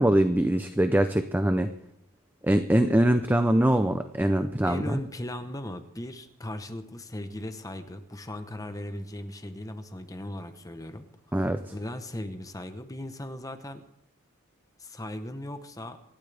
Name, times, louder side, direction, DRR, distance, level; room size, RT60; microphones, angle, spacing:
voice 1, 0.0-1.7 2.4-5.0 11.3-11.6, right 1 dB, 10° right, 9 dB, 0.5 m, -23 dB
voice 2, 4.6-13.8 14.8-16.0, left 1 dB, 15° left, 8 dB, 0.9 m, -38 dB
26.5 x 12.5 x 3.4 m, 0.75 s
head